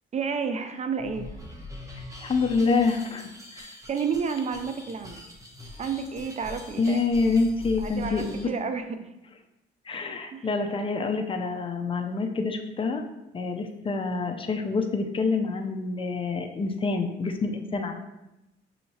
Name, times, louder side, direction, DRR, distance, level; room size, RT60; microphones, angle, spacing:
voice 1, 0.1-1.4 3.9-5.2 5.8-7.0 7.8-9.1 10.3-10.5, right 6 dB, 35° right, 8 dB, 0.4 m, -31 dB
sound 1, 1.0-8.5, left 1 dB, 15° right, 0.9 m, -43 dB
voice 2, 2.2-3.7 6.8-8.5 9.9-13.0 13.3-18.0, left 4 dB, 25° left, 4 dB, 0.5 m, -27 dB
6.3 x 2.8 x 2.8 m, 0.93 s
cardioid pair, 90°, 20 cm